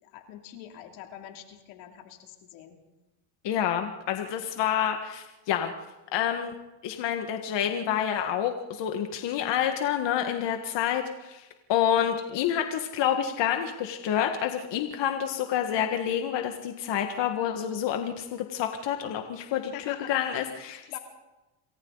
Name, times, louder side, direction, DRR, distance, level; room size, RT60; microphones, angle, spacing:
voice 1, 0.0-2.8 19.7-20.5 20.8-21.0, left 11 dB, 90° left, 3 dB, 3.2 m, -44 dB
voice 2, 3.4-5.7 6.1-6.5 6.8-21.0, left 9 dB, 60° left, 5 dB, 1.9 m, -28 dB
28.0 x 23.0 x 4.1 m, 1.0 s
supercardioid pair, 100°, 47 cm